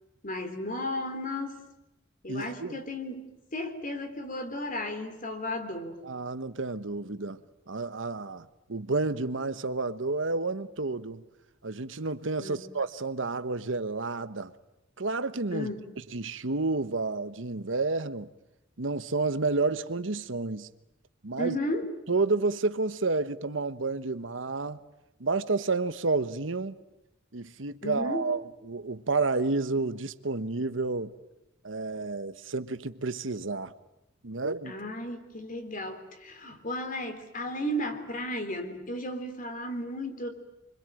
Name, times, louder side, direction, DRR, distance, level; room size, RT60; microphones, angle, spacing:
voice 1, 0.2-1.6 2.2-6.0 12.4-12.6 15.5-15.9 21.4-21.9 27.8-28.2 34.7-40.3, left 1 dB, 45° left, 3.7 m, -34 dB
voice 2, 2.3-2.8 6.0-7.4 7.7-11.2 11.6-14.5 15.0-15.7 16.1-18.3 18.8-20.7 21.2-21.5 22.1-24.8 25.2-26.8 27.3-31.1 31.6-33.7 34.2-34.7, right 3 dB, 85° right, 1.2 m, -30 dB
26.5 x 24.5 x 9.1 m
head